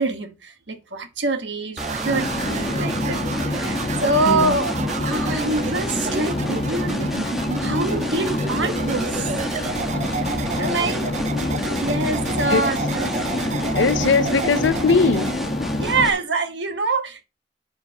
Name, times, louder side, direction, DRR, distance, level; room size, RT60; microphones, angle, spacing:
voice 1, 0.0-4.7 5.0-7.1 7.6-9.3 10.6-11.0 11.8-13.1 14.0-14.1 15.8-17.2, right 3 dB, 70° right, 1.4 m, -25 dB
sound 1, 1.8-16.1, left 1 dB, ahead, 1.1 m, -30 dB
sound 2, 1.8-15.4, right 5 dB, 40° right, 0.4 m, -31 dB
sound 3, 2.1-16.1, left 2 dB, 35° left, 1.1 m, -28 dB
voice 2, 10.4-12.0 12.5-12.7 13.4-15.4, left 4 dB, 80° left, 0.7 m, -22 dB
11.5 x 5.7 x 3.0 m
head